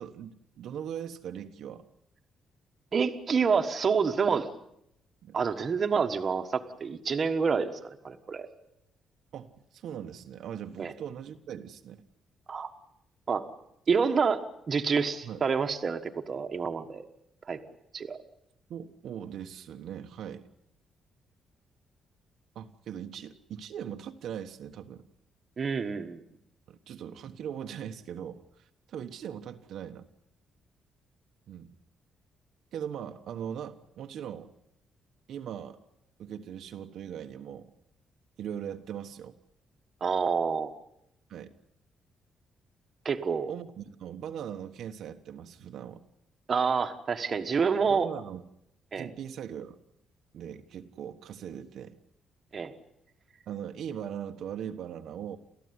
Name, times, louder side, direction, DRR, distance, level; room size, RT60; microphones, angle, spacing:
voice 1, 0.0-1.9 5.2-5.4 9.3-12.0 15.2-15.4 18.7-20.5 22.5-25.0 26.7-30.1 31.5-31.7 32.7-34.5 35.3-35.8 36.2-37.7 38.4-39.4 41.3-41.5 43.5-46.0 47.8-48.4 48.9-49.8 50.3-52.0 53.5-55.4, right 9 dB, 65° right, 5 dB, 1.2 m, -40 dB
voice 2, 2.9-4.5 5.3-8.5 10.8-10.9 12.5-12.7 13.3-13.4 13.9-16.0 16.3-17.0 17.5-17.6 17.9-18.2 25.6-26.2 40.0-40.7 43.0-43.5 46.5-48.1 48.9-49.1 52.5-52.7, right 5 dB, 35° right, 6 dB, 1.5 m, -28 dB
29.5 x 14.0 x 9.7 m, 0.80 s
cardioid pair, 165°, 0 cm